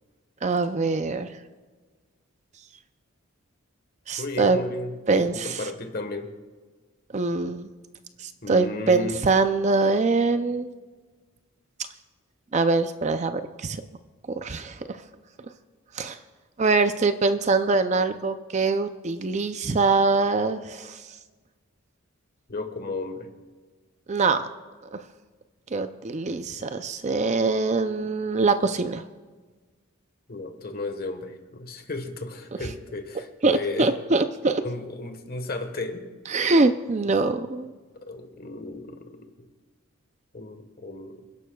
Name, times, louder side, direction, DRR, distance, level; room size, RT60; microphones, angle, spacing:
voice 1, 0.4-1.3 4.1-4.6 5.1-5.3 7.1-7.7 8.2-10.7 12.5-13.8 14.3-14.8 16.0-16.2 16.6-21.0 24.1-24.5 24.9-25.0 25.7-29.0 33.4-34.6 36.3-37.7, right 3 dB, 30° right, 10 dB, 0.4 m, -23 dB
voice 2, 4.2-6.3 8.4-9.2 22.5-23.3 30.3-33.9 34.6-36.1 38.1-39.3 40.3-41.2, left 2 dB, 45° left, 6 dB, 1.3 m, -34 dB
28.0 x 11.5 x 2.3 m, 1.4 s
head